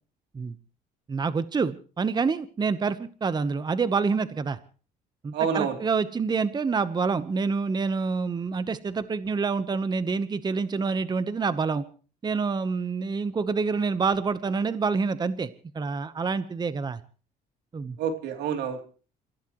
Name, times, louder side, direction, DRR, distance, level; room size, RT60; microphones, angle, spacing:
voice 1, 1.1-4.6 5.2-11.8 12.2-15.5 15.7-17.0 17.7-18.0, right 4 dB, 25° right, 14 dB, 1.0 m, -27 dB
voice 2, 5.3-5.8 18.0-18.8, right 7 dB, 85° right, 6 dB, 3.1 m, -28 dB
28.5 x 16.0 x 3.1 m, 0.39 s
cardioid pair, 110°, 17 cm